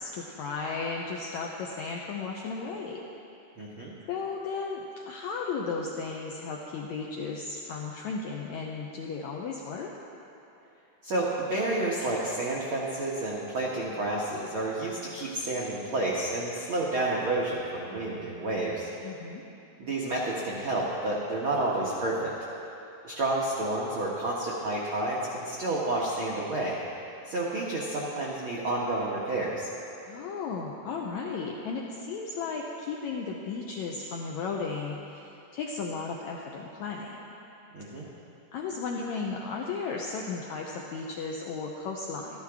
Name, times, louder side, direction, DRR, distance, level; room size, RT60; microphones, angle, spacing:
voice 1, 0.0-3.0 4.1-9.9 19.0-19.4 30.1-37.4 38.5-42.4, left 4 dB, 85° left, -1 dB, 1.6 m, -35 dB
voice 2, 3.6-3.9 11.0-18.9 19.8-22.3 23.0-26.8 27.3-29.7 37.7-38.1, right 2 dB, 75° right, -5 dB, 1.1 m, -30 dB
13.0 x 12.5 x 3.5 m, 2.8 s
omnidirectional pair, 4.0 m